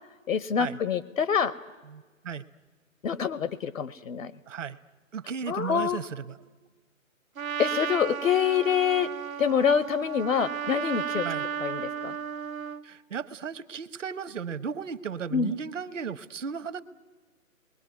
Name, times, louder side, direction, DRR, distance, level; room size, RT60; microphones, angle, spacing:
voice 1, 0.3-1.5 3.0-4.3 5.5-6.0 7.6-9.1 9.4-11.3 11.6-12.2 15.3-15.5, left 7 dB, 75° left, 15 dB, 0.9 m, -26 dB
voice 2, 1.9-2.4 4.5-4.8 5.1-6.4 11.2-11.5 12.8-16.8, right 6 dB, 65° right, 13 dB, 1.0 m, -35 dB
Trumpet, 7.4-12.8, right 8 dB, 85° right, 0.8 m, -34 dB
29.0 x 21.5 x 9.3 m, 1.4 s
hypercardioid pair, 160°, 41 cm